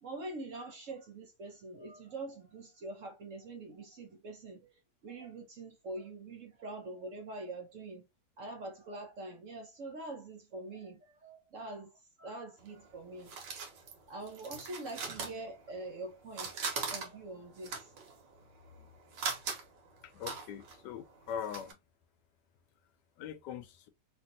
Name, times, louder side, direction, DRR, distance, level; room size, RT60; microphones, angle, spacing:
voice 1, 0.0-8.1 8.4-11.9 12.2-13.4 14.1-18.2 18.8-18.9, right 2 dB, 60° right, 0.9 m, -44 dB
sound 1, 12.6-16.0 16.3-21.7, right 5 dB, 75° right, 1.5 m, -41 dB
voice 2, 20.0-21.8 23.2-23.9, left 8 dB, 80° left, 1.2 m, -42 dB
3.2 x 2.5 x 2.6 m
omnidirectional pair, 1.9 m